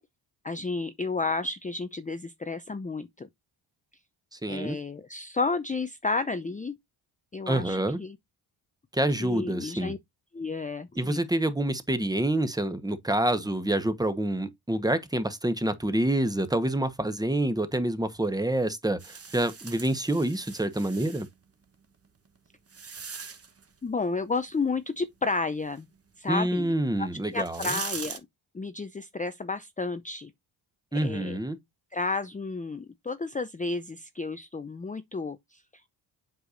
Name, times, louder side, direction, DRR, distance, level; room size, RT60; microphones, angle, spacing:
voice 1, 0.4-3.3 4.5-6.8 7.3-8.2 9.2-10.0 10.3-11.2 23.8-25.9 26.2-26.7 27.0-27.1 27.3-28.2 28.5-30.3 30.9-31.4 31.9-35.9, left 3 dB, 15° left, 0.6 m, -32 dB
voice 2, 4.3-4.8 7.5-8.0 8.9-9.9 10.9-21.3 26.3-27.8 30.9-31.6, right 1 dB, 10° right, 1.2 m, -27 dB
sound 1, 19.0-21.3 22.0-23.6 26.7-26.8 27.3-28.2, right 5 dB, 30° right, 1.2 m, -40 dB
7.9 x 4.7 x 2.6 m
supercardioid pair, 50°, 49 cm